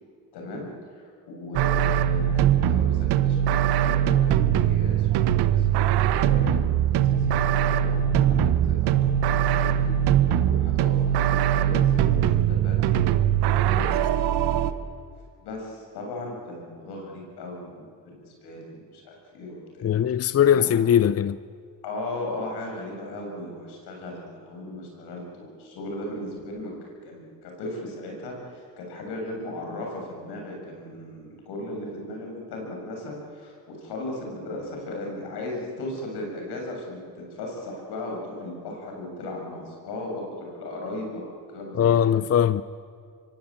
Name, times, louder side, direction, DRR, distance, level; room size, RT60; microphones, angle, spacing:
voice 1, 0.3-13.1 13.5-14.6 15.4-19.9 20.5-20.8 21.8-42.1, left 1 dB, 85° left, 7.6 m, -37 dB
sound 1, 1.5-14.7, right 10 dB, 85° right, 1.2 m, -21 dB
voice 2, 19.8-21.4 41.7-42.6, left 9 dB, 40° left, 0.6 m, -20 dB
24.5 x 24.0 x 9.0 m
cardioid pair, 90°, 38 cm